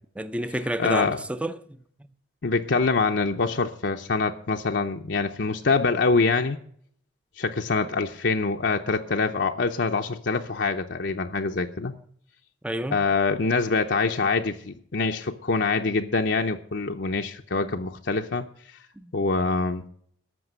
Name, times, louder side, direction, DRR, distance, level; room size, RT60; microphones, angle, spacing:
voice 1, 0.2-1.6 11.9-12.0 12.6-13.1 14.2-14.3 17.6-17.7 19.0-19.1, right 1 dB, 5° right, 0.5 m, -30 dB
voice 2, 0.8-1.2 2.4-6.6 7.4-11.9 12.9-18.4 19.1-19.8, left 4 dB, 65° left, 0.7 m, -25 dB
14.0 x 5.9 x 8.9 m
head